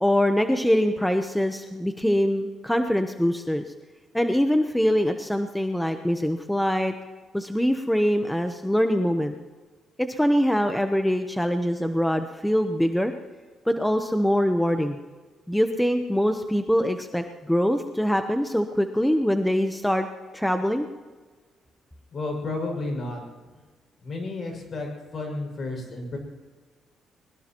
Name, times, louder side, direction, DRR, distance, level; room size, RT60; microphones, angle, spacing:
voice 1, 0.0-3.6 4.1-6.9 7.3-9.3 10.0-13.1 13.7-15.0 15.5-20.1 20.3-20.9, equal, 5° left, 7 dB, 0.9 m, -23 dB
voice 2, 22.1-23.2 24.0-26.2, left 2 dB, 50° left, 2 dB, 6.2 m, -32 dB
22.0 x 21.5 x 3.0 m, 1.4 s
cardioid pair, 90°, 0 cm